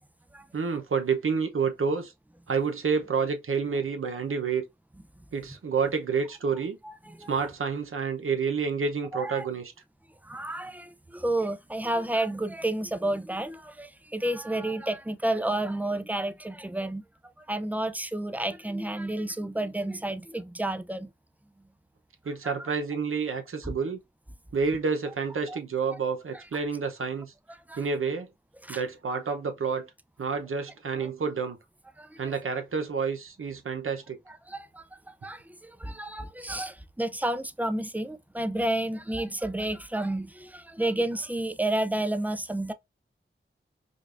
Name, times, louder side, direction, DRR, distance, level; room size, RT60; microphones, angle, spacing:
voice 1, 0.5-2.1 2.5-4.6 5.3-6.8 7.3-9.7 22.2-24.0 24.5-27.3 27.8-28.3 28.7-29.9 30.2-31.6 32.2-34.2, right 5 dB, 80° right, 0.8 m, -29 dB
voice 2, 6.8-7.3 9.1-9.5 10.3-17.0 17.5-21.1 22.6-22.7 23.6-23.7 25.5-25.6 27.7-27.8 28.7-28.8 31.0-31.1 34.5-34.6 35.2-35.4 35.8-42.7, right 1 dB, 5° right, 0.4 m, -30 dB
5.1 x 2.3 x 2.5 m
wide cardioid pair, 70°, 21 cm